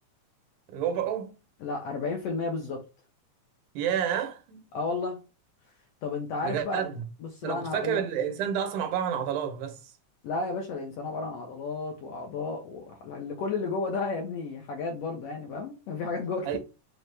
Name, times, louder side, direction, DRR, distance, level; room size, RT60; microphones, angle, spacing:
voice 1, 0.7-1.3 3.8-4.6 6.4-7.0 7.4-9.8 16.5-16.6, right 9 dB, 90° right, 2.3 m, -29 dB
voice 2, 1.6-2.8 4.7-5.2 6.0-6.8 7.2-8.0 10.2-16.6, left 3 dB, 75° left, 1.4 m, -32 dB
5.8 x 2.0 x 3.2 m
omnidirectional pair, 3.5 m